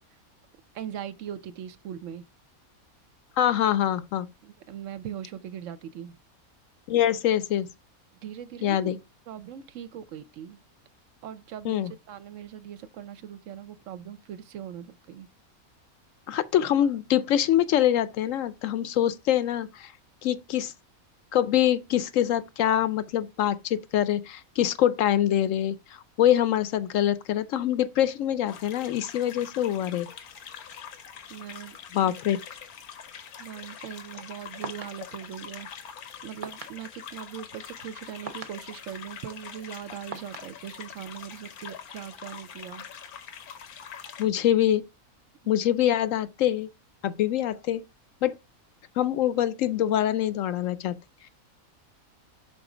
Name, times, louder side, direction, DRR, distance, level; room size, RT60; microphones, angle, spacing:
voice 1, 0.7-2.2 4.4-6.2 8.2-9.0 9.3-10.6 11.2-15.3 31.3-32.1 33.4-35.7 36.2-42.9, right 9 dB, 70° right, 0.9 m, -40 dB
voice 2, 3.4-4.3 6.9-7.7 8.6-9.0 11.6-11.9 16.3-19.9 20.2-20.7 21.3-25.8 26.2-30.1 31.9-32.4 44.2-44.8 45.5-46.7 47.0-47.8 48.2-48.4 49.0-51.0, left 11 dB, 70° left, 0.9 m, -24 dB
sound 1, 28.5-44.3, left 8 dB, 90° left, 1.4 m, -44 dB
sound 2, 34.1-41.6, right 5 dB, 45° right, 0.5 m, -46 dB
6.1 x 4.0 x 4.8 m
omnidirectional pair, 1.5 m